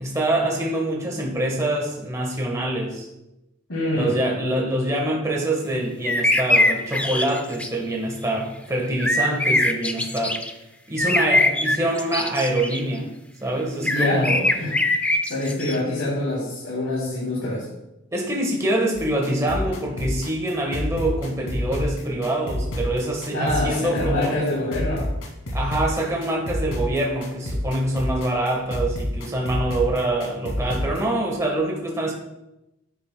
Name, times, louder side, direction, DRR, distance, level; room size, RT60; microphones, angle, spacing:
voice 1, 0.0-3.1 3.9-10.4 10.9-13.1 13.4-14.5 18.1-24.3 25.5-32.1, right 1 dB, 15° right, -1 dB, 1.3 m, -25 dB
voice 2, 3.7-4.2 13.8-14.3 14.5-14.8 15.2-17.7 23.3-25.1, left 1 dB, 70° left, -8 dB, 2.9 m, -25 dB
sound 1, 6.0-7.7 9.0-10.5 11.0-12.8 13.9-15.8, left 1 dB, 5° left, 0.4 m, -22 dB
sound 2, 18.9-31.0, left 1 dB, 90° left, 2.3 m, -29 dB
10.5 x 9.1 x 2.2 m, 0.92 s
head